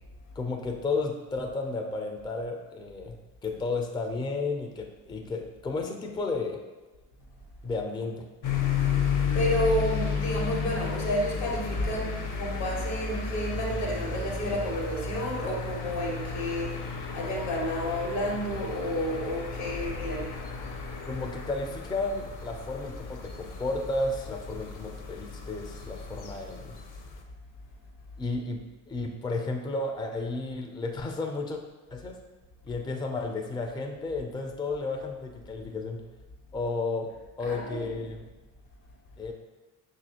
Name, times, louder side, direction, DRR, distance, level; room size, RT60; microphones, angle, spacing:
voice 1, 0.4-3.2 3.4-6.6 7.6-8.3 21.1-26.7 28.2-31.6 31.9-32.2 32.6-36.0 36.5-37.1 37.4-38.2 39.2-39.3, left 3 dB, 10° left, 3 dB, 0.4 m, -32 dB
sound 1, 8.4-27.2, left 6 dB, 45° left, 0.7 m, -33 dB
voice 2, 9.3-16.9 17.1-20.3 37.4-38.1, equal, 75° left, -2 dB, 1.4 m, -31 dB
5.7 x 2.5 x 2.8 m, 1.2 s
supercardioid pair, 60°, 43 cm